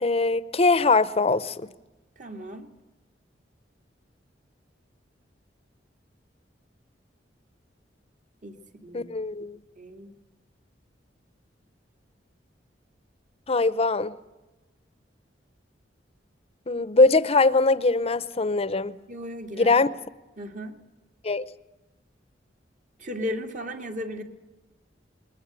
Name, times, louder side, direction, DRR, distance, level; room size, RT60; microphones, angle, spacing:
voice 1, 0.0-1.6 8.9-9.6 13.5-14.1 16.7-19.0 19.5-19.9 21.2-21.4, left 3 dB, 35° left, 0.8 m, -21 dB
voice 2, 2.2-2.7 8.4-9.1 9.8-10.1 19.1-19.8 20.4-20.8 23.0-24.2, left 1 dB, 45° right, 2.2 m, -36 dB
21.0 x 20.0 x 9.0 m
head